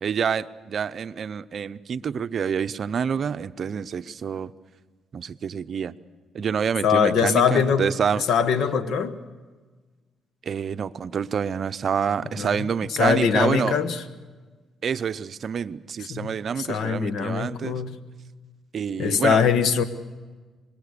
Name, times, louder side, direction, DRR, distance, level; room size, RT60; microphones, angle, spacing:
voice 1, 0.0-4.5 5.1-5.9 6.3-8.2 10.4-13.8 14.8-17.8 18.7-19.4, right 7 dB, 55° right, 13 dB, 0.7 m, -27 dB
voice 2, 6.8-7.9 8.3-9.2 12.4-12.5 13.0-14.0 16.1-16.3 16.6-18.0 19.0-19.8, left 7 dB, 75° left, 12 dB, 1.2 m, -22 dB
25.5 x 21.5 x 6.7 m, 1.4 s
cardioid pair, 90°, 0 cm